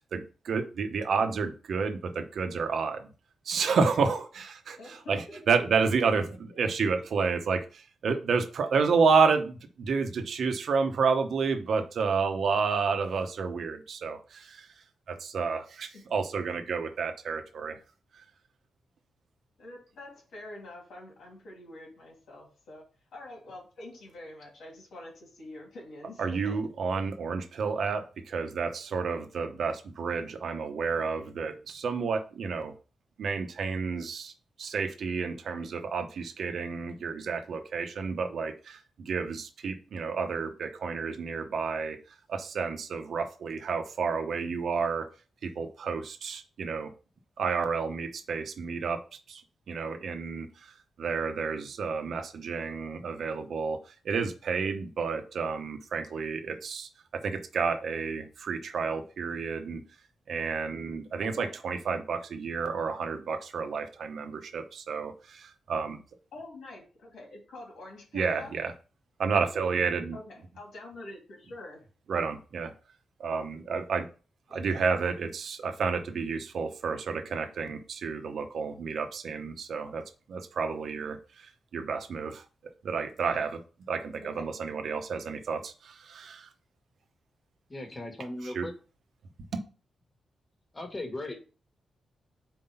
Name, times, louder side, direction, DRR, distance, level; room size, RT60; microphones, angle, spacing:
voice 1, 0.0-3.1 3.4-14.7 15.1-17.8 18.1-18.2 26.2-32.7 33.2-34.3 34.6-45.1 45.4-46.9 47.4-49.0 49.3-49.4 49.7-59.8 60.3-66.0 68.1-68.7 69.2-70.2 72.1-72.7 73.2-74.1 74.5-82.4 82.8-83.6 83.9-86.5 88.4-88.7, right 5 dB, 60° right, 6 dB, 0.9 m, -30 dB
voice 2, 4.8-7.0 15.9-16.0 19.6-22.9 23.1-26.7 61.3-61.5 66.3-68.5 70.1-71.9 74.5-74.9 84.2-84.4, left 2 dB, 85° left, -1 dB, 2.6 m, -46 dB
voice 3, 87.7-88.7 90.7-91.4, left 1 dB, 20° left, 3 dB, 1.4 m, -37 dB
4.6 x 3.9 x 5.6 m, 0.35 s
wide cardioid pair, 140°, 0 cm